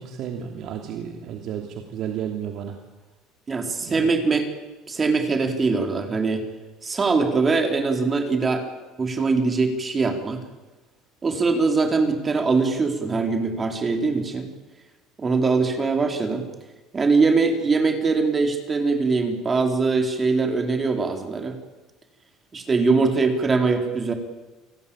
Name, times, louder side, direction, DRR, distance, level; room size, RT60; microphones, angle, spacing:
voice 1, 0.0-2.8 3.8-4.1, right 9 dB, 60° right, 4 dB, 2.9 m, -32 dB
voice 2, 3.5-4.5 4.9-6.4 6.8-8.6 9.0-10.4 11.2-14.5 15.2-16.4 16.9-21.6 22.5-24.1, right 4 dB, 25° right, 5 dB, 4.2 m, -22 dB
28.5 x 18.5 x 8.9 m, 1.2 s
cardioid pair, 120°, 0 cm